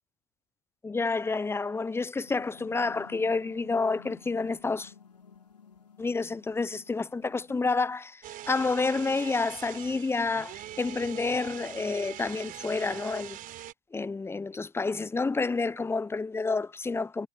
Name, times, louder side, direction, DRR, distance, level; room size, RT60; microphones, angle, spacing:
voice 1, 0.8-4.9 6.0-13.4 13.9-17.3, left 4 dB, 10° left, 0.8 m, -29 dB
sound 1, 2.2-7.8, left 6 dB, 90° left, 4.5 m, -53 dB
sound 2, 8.2-13.7, right 13 dB, 45° right, 3.7 m, -43 dB
hypercardioid pair, 80°, 20 cm